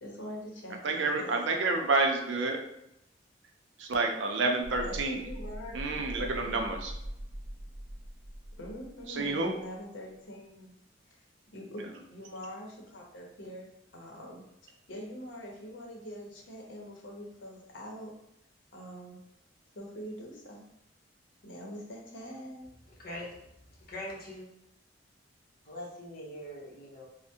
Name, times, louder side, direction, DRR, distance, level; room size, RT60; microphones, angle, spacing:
voice 1, 0.0-1.7 4.8-6.7 8.6-10.7 11.1-11.2 11.5-18.1 18.7-19.2 19.7-20.6 21.4-22.7, equal, 90° left, -1 dB, 0.7 m, -44 dB
voice 2, 0.8-2.6 3.8-5.3 5.7-6.9 9.1-9.6, right 3 dB, 85° right, 3 dB, 0.5 m, -29 dB
sound 1, 4.6-9.5 9.8-9.9, equal, 20° right, 0.3 m, -42 dB
voice 3, 22.9-24.5 25.6-27.1, left 1 dB, 55° left, -2 dB, 0.7 m, -43 dB
3.3 x 2.1 x 2.7 m, 0.80 s
head